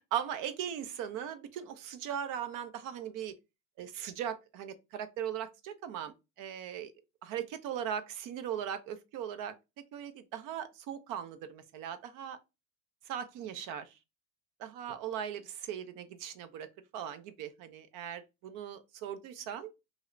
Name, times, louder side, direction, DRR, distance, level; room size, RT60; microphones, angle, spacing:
voice 1, 0.1-3.3 3.8-6.9 7.2-9.5 9.9-12.4 13.1-13.9 14.6-16.7 16.9-19.7, right 9 dB, 50° right, 0.7 m, -39 dB
2.7 x 2.6 x 3.1 m
hypercardioid pair, 75°, 40 cm